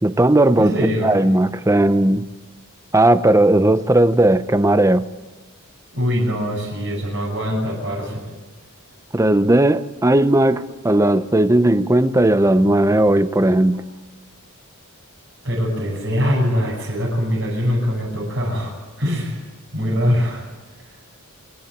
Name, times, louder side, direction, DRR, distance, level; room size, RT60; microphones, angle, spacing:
voice 1, 0.0-0.7 1.0-2.3 2.9-5.1 9.1-13.8, right 1 dB, 15° right, 13 dB, 0.6 m, -16 dB
voice 2, 0.6-1.1 5.9-8.2 15.4-18.7 19.0-19.4 19.7-20.4, equal, 55° right, -9 dB, 7.5 m, -22 dB
27.0 x 12.0 x 9.3 m, 1.3 s
head